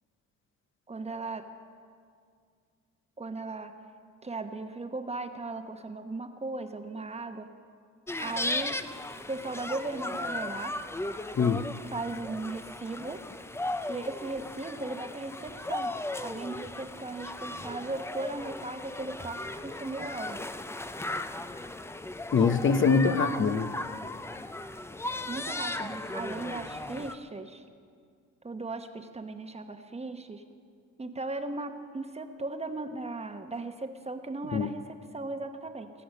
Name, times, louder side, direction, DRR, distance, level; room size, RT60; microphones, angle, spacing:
voice 1, 0.9-1.5 3.2-3.7 4.2-7.5 8.2-8.8 9.3-10.8 11.9-13.2 13.9-16.0 16.2-20.5 25.3-27.6 28.4-30.4 31.0-35.9, right 2 dB, 20° right, 7 dB, 1.0 m, -37 dB
sound 1, 8.1-27.1, left 2 dB, 10° left, 0.5 m, -36 dB
voice 2, 11.3-11.7 22.3-23.8 34.5-34.7, left 5 dB, 40° left, 10 dB, 0.7 m, -24 dB
21.0 x 7.8 x 6.5 m, 2.2 s
cardioid pair, 90°, 30 cm